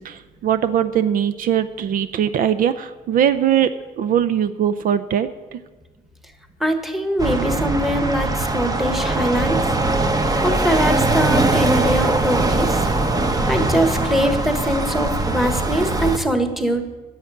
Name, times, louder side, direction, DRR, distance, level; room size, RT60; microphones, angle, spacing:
voice 1, 0.0-5.6, right 9 dB, 55° right, 12 dB, 0.5 m, -21 dB
voice 2, 6.6-9.6 10.4-12.9 13.5-16.9, equal, ahead, 7 dB, 1.4 m, -22 dB
sound 1, 7.2-16.2, right 2 dB, 20° right, 1.1 m, -21 dB
11.0 x 7.3 x 9.3 m, 1.3 s
cardioid pair, 110°, 17 cm